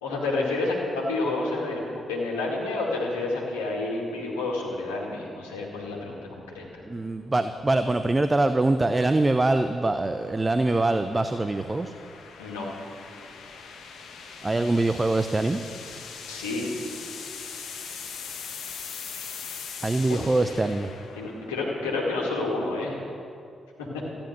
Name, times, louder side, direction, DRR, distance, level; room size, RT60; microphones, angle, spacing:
voice 1, 0.0-6.7 12.4-12.7 16.3-16.7 20.1-20.2 21.1-23.0 23.8-23.9, left 2 dB, 90° left, -3 dB, 2.1 m, -29 dB
sound 1, 5.9-22.0, left 6 dB, 70° left, 1.4 m, -42 dB
voice 2, 6.8-11.9 14.4-15.6 15.9-16.0 19.8-20.9, right 2 dB, 25° right, 9 dB, 0.7 m, -24 dB
14.0 x 10.5 x 6.7 m, 2.4 s
hypercardioid pair, 40°, 0 cm